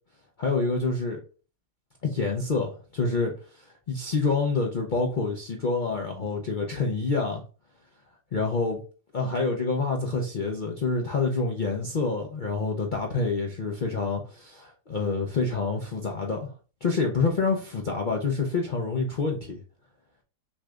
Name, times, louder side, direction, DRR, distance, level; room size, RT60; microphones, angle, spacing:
voice 1, 0.4-1.2 2.0-3.3 3.9-7.4 8.3-8.8 9.1-16.5 16.8-19.6, left 4 dB, 85° left, 0 dB, 0.4 m, -27 dB
6.2 x 3.2 x 2.4 m, 0.36 s
omnidirectional pair, 1.8 m